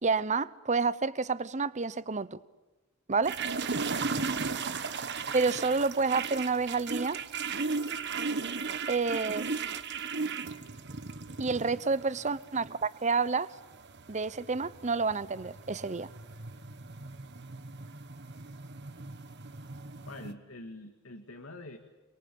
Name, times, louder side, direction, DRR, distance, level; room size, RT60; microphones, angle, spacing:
voice 1, 0.0-2.4 3.1-3.4 5.3-7.2 8.9-9.5 11.4-13.5 14.1-16.1, right 4 dB, 35° right, 0.9 m, -29 dB
sound 1, 3.2-20.3, right 4 dB, 55° right, 1.4 m, -36 dB
voice 2, 4.2-4.7 11.7-11.8 20.1-21.8, left 2 dB, 80° left, 2.0 m, -45 dB
29.5 x 23.0 x 8.5 m
head